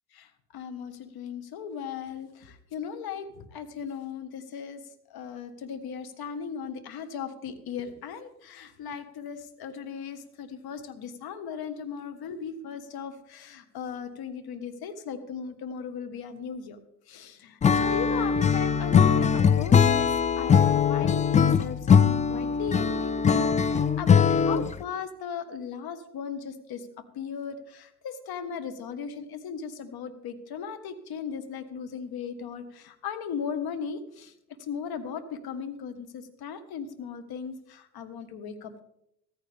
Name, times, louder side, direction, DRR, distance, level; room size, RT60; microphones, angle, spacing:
voice 1, 0.5-4.8 5.1-16.8 17.1-26.9 27.2-34.3 34.6-38.8, left 6 dB, 50° left, 9 dB, 1.7 m, -37 dB
Acoustic guitar / Strum, 17.6-24.8, left 7 dB, 15° left, 0.5 m, -21 dB
15.5 x 14.5 x 3.6 m, 0.78 s
hypercardioid pair, 70°, 47 cm